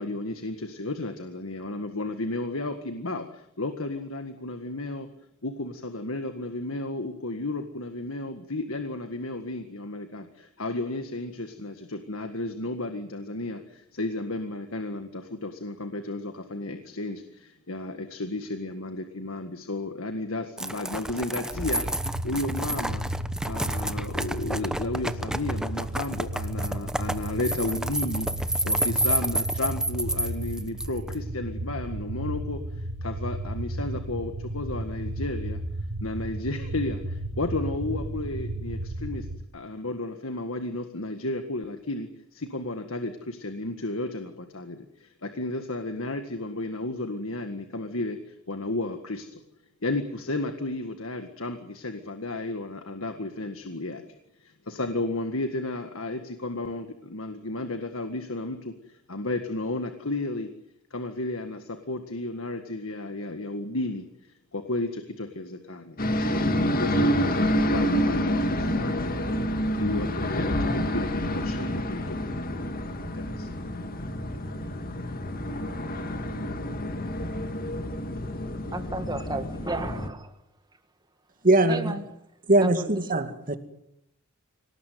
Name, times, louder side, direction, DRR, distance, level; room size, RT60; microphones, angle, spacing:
voice 1, 0.0-5.1 5.4-23.1 23.4-35.6 36.0-39.3 39.5-49.4 49.8-60.5 60.9-69.1 69.8-72.7 73.1-73.5, left 2 dB, 65° left, 1.8 m, -33 dB
sound 1, 20.6-31.1, right 1 dB, 5° right, 0.9 m, -30 dB
sound 2, 21.5-39.4, right 1 dB, 80° right, 1.5 m, -34 dB
sound 3, 66.0-80.1, equal, 40° left, 2.1 m, -28 dB
voice 2, 78.7-80.3 81.7-82.0 82.6-82.9, right 2 dB, 20° right, 1.8 m, -33 dB
voice 3, 81.4-82.0 82.5-83.5, right 2 dB, 40° right, 2.3 m, -21 dB
25.5 x 18.5 x 9.4 m
head